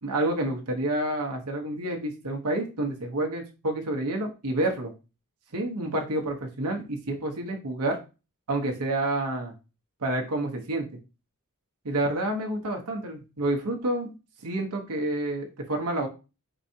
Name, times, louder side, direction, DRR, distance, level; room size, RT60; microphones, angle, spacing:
voice 1, 0.0-4.9 5.5-8.0 8.5-9.5 10.0-10.9 11.8-14.1 14.4-16.1, right 1 dB, 90° right, 2 dB, 1.0 m, -29 dB
4.6 x 3.9 x 2.8 m, 0.30 s
head